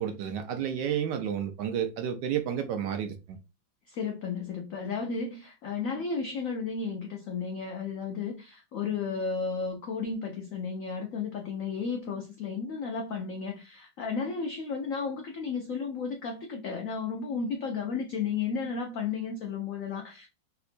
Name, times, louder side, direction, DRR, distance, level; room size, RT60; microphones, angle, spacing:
voice 1, 0.0-3.4, right 9 dB, 75° right, 1.1 m, -31 dB
voice 2, 3.9-20.3, left 5 dB, 85° left, 0.7 m, -33 dB
3.4 x 2.8 x 2.5 m
omnidirectional pair, 2.1 m